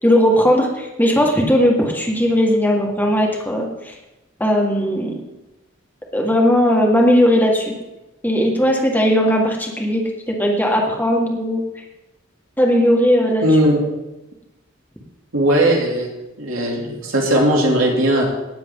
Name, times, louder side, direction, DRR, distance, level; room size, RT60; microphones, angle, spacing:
voice 1, 0.0-3.9 4.4-5.2 6.1-7.7 8.2-11.6 12.6-13.4, equal, 10° left, 0 dB, 1.8 m, -17 dB
voice 2, 13.4-13.8 15.3-16.1 16.4-18.2, right 1 dB, 90° right, -1 dB, 2.9 m, -17 dB
18.0 x 7.2 x 3.8 m, 1.0 s
head